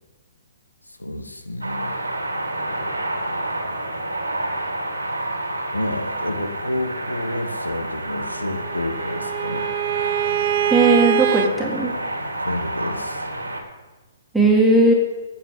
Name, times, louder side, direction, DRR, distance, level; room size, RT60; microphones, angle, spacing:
voice 1, 0.8-2.0 5.7-9.7 12.4-13.3, left 1 dB, 90° left, 6 dB, 1.2 m, -29 dB
sound 1, 1.6-13.6, right 1 dB, 85° right, 2.3 m, -29 dB
Bowed string instrument, 8.4-11.5, right 10 dB, 45° right, 0.7 m, -24 dB
voice 2, 10.7-11.9 14.3-14.9, right 2 dB, ahead, -2 dB, 1.9 m, -17 dB
9.1 x 6.7 x 7.4 m, 1.2 s
figure-of-eight pair, 125°, 0 cm